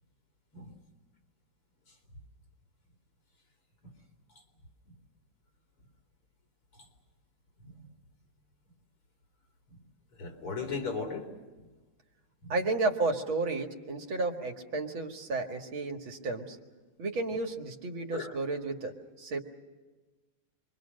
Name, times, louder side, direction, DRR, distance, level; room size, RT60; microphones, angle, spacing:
voice 1, 10.2-11.3 12.4-12.5 18.1-18.4, left 4 dB, 85° left, 1 dB, 5.0 m, -37 dB
voice 2, 12.5-16.6 17.0-19.4, right 3 dB, 70° right, 3 dB, 2.8 m, -32 dB
27.5 x 23.5 x 6.5 m, 1.2 s
omnidirectional pair, 2.3 m